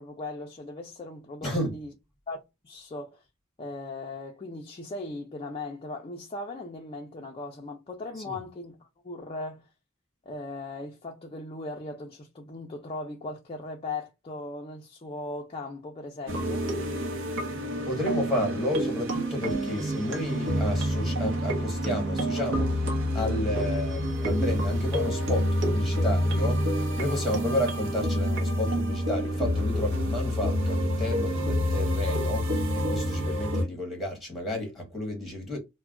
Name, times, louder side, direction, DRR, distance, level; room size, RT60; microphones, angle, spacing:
voice 1, 0.0-1.9 2.3-3.2 3.6-9.7 10.3-16.7, left 2 dB, 25° left, 0.4 m, -38 dB
voice 2, 1.4-1.7 8.2-8.4 17.8-35.6, left 1 dB, ahead, 0.9 m, -32 dB
sound 1, 16.3-33.6, equal, 60° right, 0.8 m, -27 dB
2.3 x 2.1 x 3.4 m
head